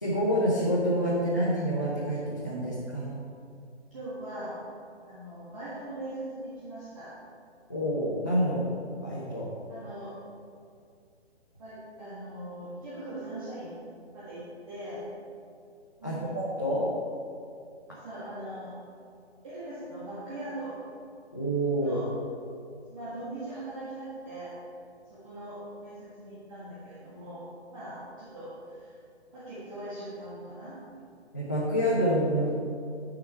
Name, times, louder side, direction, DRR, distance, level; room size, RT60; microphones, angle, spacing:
voice 1, 0.0-3.2 7.7-8.7 9.0-9.5 16.0-16.9 21.3-22.0 31.3-32.5, equal, 15° left, -9 dB, 0.5 m, -27 dB
voice 2, 3.9-4.6 5.1-7.1 9.7-10.2 11.6-13.8 14.1-15.1 16.0-16.4 17.9-18.8 19.4-20.8 21.8-22.1 22.9-24.5 25.1-29.0 29.3-30.8, right 1 dB, 30° right, -10 dB, 1.7 m, -40 dB
9.0 x 5.7 x 4.3 m, 2.4 s
hypercardioid pair, 165°, 34 cm